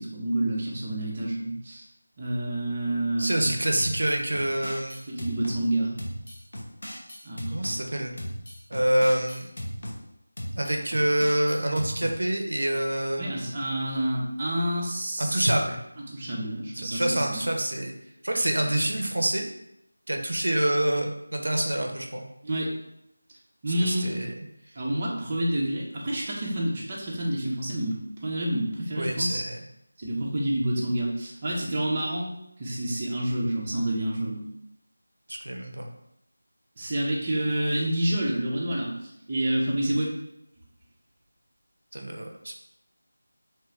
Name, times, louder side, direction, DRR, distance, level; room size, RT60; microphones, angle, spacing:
voice 1, 0.0-1.9 2.2-3.6 5.1-5.9 7.2-7.8 13.2-15.5 16.1-17.5 22.4-22.7 23.6-24.1 24.8-28.0 28.2-29.4 30.0-32.3 32.6-34.4 36.8-40.1, right 1 dB, 25° right, -4 dB, 0.5 m, -28 dB
voice 2, 3.2-5.0 7.5-8.2 8.7-9.5 10.5-13.2 15.2-15.8 16.7-17.9 18.2-19.4 20.1-22.2 23.8-24.3 29.0-29.6 35.3-35.9 41.9-42.6, right 1 dB, 80° right, 2 dB, 0.5 m, -26 dB
sound 1, 3.8-5.6 6.0-7.8 8.2-10.0 10.4-12.2, equal, 75° left, 0.7 m, -37 dB
2.8 x 2.4 x 3.2 m, 0.82 s
figure-of-eight pair, 175°, 0 cm